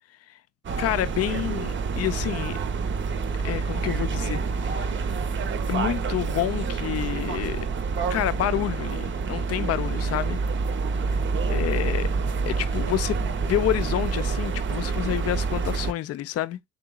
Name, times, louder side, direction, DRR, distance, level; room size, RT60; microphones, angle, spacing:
sound 1, 0.6-15.9, right 4 dB, 40° right, 0.6 m, -27 dB
voice 1, 0.8-2.6 3.4-5.1 5.7-7.7 8.1-10.4 11.5-12.1 12.5-16.6, left 13 dB, 55° left, 0.4 m, -28 dB
3.9 x 3.8 x 2.2 m
cardioid pair, 90°, 30 cm